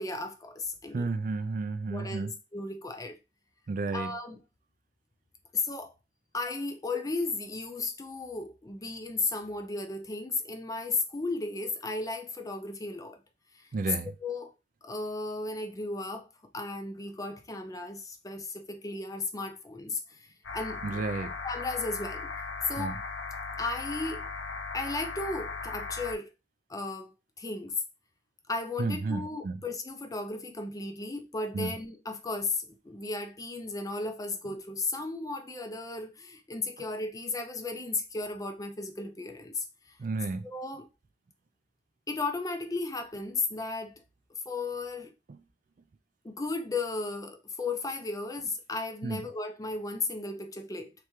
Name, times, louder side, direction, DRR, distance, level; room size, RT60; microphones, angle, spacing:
voice 1, 0.0-1.0 1.9-3.2 3.9-4.4 5.5-5.9 6.3-13.2 14.2-14.5 14.8-16.3 16.5-21.0 21.4-22.3 22.7-23.0 23.6-24.3 24.7-26.3 26.7-27.7 28.5-39.7 40.4-40.9 42.1-43.9 44.5-45.1 46.2-50.9, left 3 dB, 20° left, 0.4 m, -35 dB
voice 2, 0.9-2.3 3.7-4.1 13.7-14.1 20.8-21.4 22.8-23.0 28.8-29.6 31.5-31.7 36.8-36.9 40.0-40.5 45.3-45.4 49.0-49.2, right 3 dB, 45° right, 0.3 m, -32 dB
sound 1, 20.4-26.1, left 4 dB, 85° left, 1.0 m, -38 dB
3.5 x 3.3 x 3.0 m
head